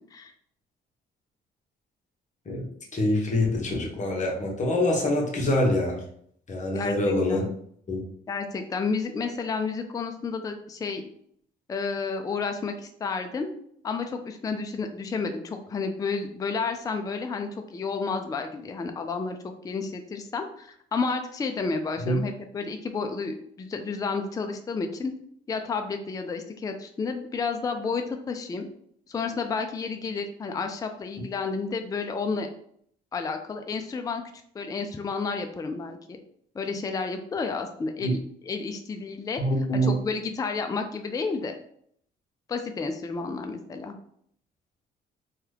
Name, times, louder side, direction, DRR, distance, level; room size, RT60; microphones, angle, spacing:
voice 1, 2.9-6.0 6.5-7.5 7.9-8.0 22.0-22.2 38.0-38.1 39.4-39.9, left 1 dB, 35° left, 0 dB, 1.0 m, -25 dB
voice 2, 6.7-7.5 8.3-11.0 11.7-13.5 13.8-19.4 19.6-25.1 25.5-28.7 29.1-32.5 33.1-34.2 34.5-36.2 36.6-39.4 39.7-41.5 42.5-43.9, left 4 dB, 20° left, 6 dB, 0.3 m, -31 dB
2.8 x 2.3 x 3.3 m, 0.66 s
cardioid pair, 90°, 20 cm